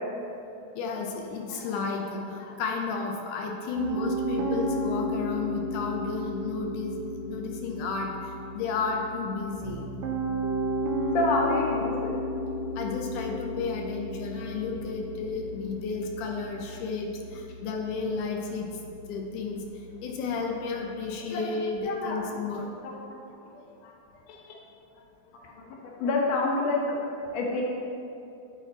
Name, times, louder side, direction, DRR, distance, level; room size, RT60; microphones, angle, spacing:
voice 1, 0.8-7.0 7.3-9.8 12.8-18.7 19.1-19.6 20.0-22.7 23.5-23.9 24.5-24.6, left 4 dB, 85° left, 1 dB, 2.3 m, -32 dB
Piano, 3.7-20.9, equal, 80° right, 1.3 m, -34 dB
voice 2, 11.1-12.1 21.3-21.4 21.8-22.5 25.3-25.4 26.0-27.0 27.3-27.6, left 2 dB, 65° left, -2 dB, 2.1 m, -27 dB
11.5 x 4.1 x 4.0 m, 2.7 s
omnidirectional pair, 3.5 m